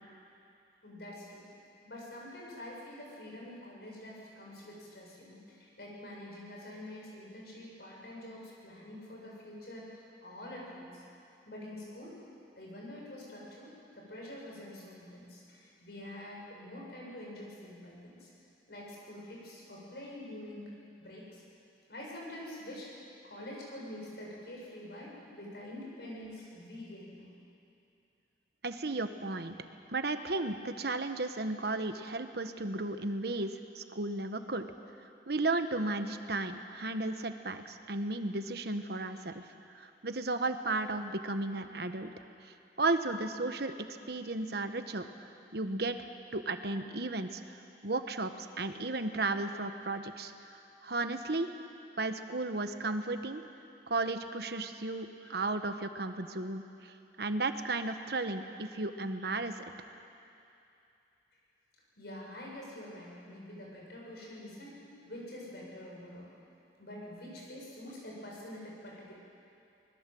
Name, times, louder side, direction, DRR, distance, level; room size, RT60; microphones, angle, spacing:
voice 1, 0.8-1.5 1.8-9.9 10.2-11.0 11.5-12.2 12.6-18.3 18.7-20.7 21.0-21.4 21.9-22.9 23.2-27.3 62.0-66.3 66.8-69.1, left 1 dB, 65° left, -3 dB, 7.3 m, -46 dB
voice 2, 28.6-29.5 29.9-34.7 35.3-39.4 39.7-42.1 42.8-45.0 45.5-46.0 46.3-47.4 47.8-50.3 50.8-51.5 52.0-53.4 53.9-59.6, right 2 dB, 65° right, 8 dB, 1.3 m, -34 dB
24.5 x 21.0 x 7.8 m, 2.7 s
head